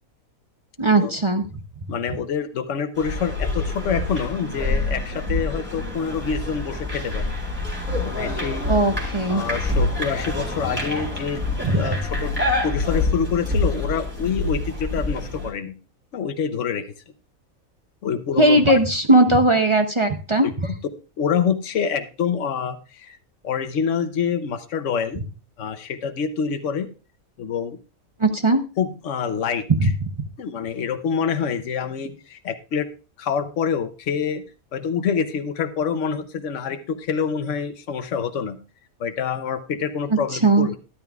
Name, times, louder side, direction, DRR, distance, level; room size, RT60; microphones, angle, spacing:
voice 1, 0.8-1.4 8.7-9.4 11.6-11.8 18.4-20.7 28.2-28.6 29.7-29.9 40.4-40.7, right 2 dB, 30° right, 6 dB, 0.6 m, -18 dB
voice 2, 1.9-7.3 7.9-8.7 9.3-11.4 11.7-12.0 12.2-12.4 12.6-15.8 16.1-16.9 18.0-18.8 20.4-20.5 21.2-23.2 23.4-25.2 25.6-26.9 27.4-27.8 28.8-29.9 30.4-32.9 33.2-34.4 34.7-38.6 39.0-40.8, left 6 dB, 65° left, 9 dB, 1.2 m, -26 dB
sound 1, 3.0-15.5, left 2 dB, 10° right, 3.3 m, -26 dB
12.5 x 11.5 x 2.4 m, 0.32 s
omnidirectional pair, 1.5 m